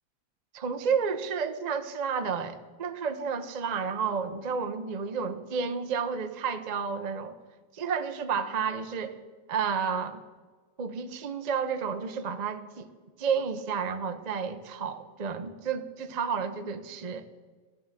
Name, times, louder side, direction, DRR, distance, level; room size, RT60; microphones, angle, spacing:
voice 1, 0.5-7.4 7.7-9.2 9.5-10.2 10.8-12.9 13.2-17.3, right 6 dB, 70° right, 8 dB, 0.4 m, -31 dB
15.5 x 11.5 x 7.4 m, 1.4 s
omnidirectional pair, 2.2 m